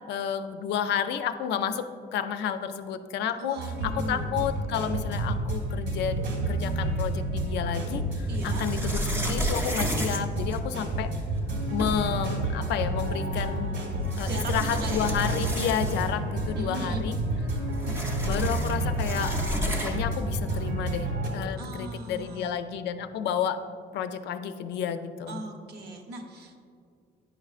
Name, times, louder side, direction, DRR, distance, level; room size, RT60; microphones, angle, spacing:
voice 1, 0.1-3.6 3.8-11.1 11.7-13.8 14.2-17.2 18.2-21.1 21.3-23.6 23.9-25.4, left 8 dB, 75° left, 10 dB, 0.4 m, -31 dB
voice 2, 3.4-4.3 8.3-8.7 14.3-15.1 16.5-17.0 21.6-22.5 25.3-26.6, right 2 dB, 65° right, 3 dB, 0.9 m, -38 dB
sound 1, 3.6-21.3, right 1 dB, 80° right, 1.5 m, -30 dB
sound 2, 6.9-7.5 8.3-11.1 11.5-11.6 11.8-12.3 13.3-13.4 14.0-16.3 16.6-16.7 17.0-20.2, equal, 10° right, 0.6 m, -33 dB
9.3 x 5.8 x 2.4 m, 2.3 s
cardioid pair, 160°, 18 cm